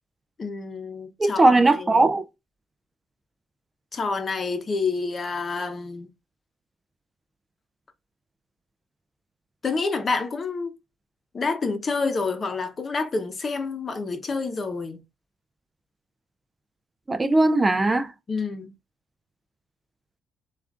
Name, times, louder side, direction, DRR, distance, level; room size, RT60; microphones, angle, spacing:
voice 1, 0.4-1.5 1.8-2.1 3.9-6.1 9.6-10.7 11.3-15.0 18.3-18.7, left 4 dB, 40° left, 0.8 m, -28 dB
voice 2, 1.2-2.2 17.1-18.1, right 2 dB, 25° right, 0.4 m, -19 dB
7.0 x 2.5 x 2.4 m
cardioid pair, 90°, 0 cm